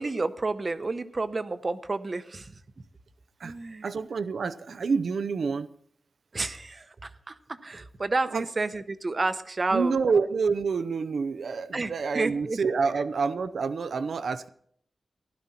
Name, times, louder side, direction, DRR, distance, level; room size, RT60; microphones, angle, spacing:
voice 1, 0.0-2.5 3.4-3.8 6.3-10.0 11.7-12.6, right 3 dB, 40° right, 11 dB, 0.8 m, -30 dB
voice 2, 3.8-5.7 8.3-8.5 9.7-14.5, right 5 dB, 85° right, 12 dB, 0.6 m, -28 dB
15.5 x 12.0 x 4.2 m, 0.65 s
wide cardioid pair, 100°, 0 cm